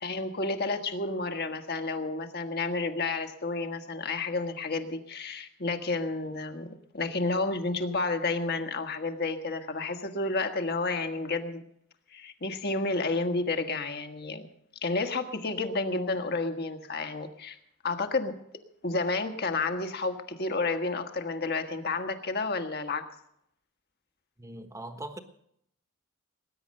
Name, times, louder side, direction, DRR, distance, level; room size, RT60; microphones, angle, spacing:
voice 1, 0.0-11.6 12.1-14.5 14.8-17.6 17.8-18.3 18.8-23.1, left 3 dB, 45° left, 1.5 m, -31 dB
voice 2, 24.4-25.2, right 1 dB, 15° right, 1.2 m, -40 dB
19.5 x 10.0 x 6.5 m
head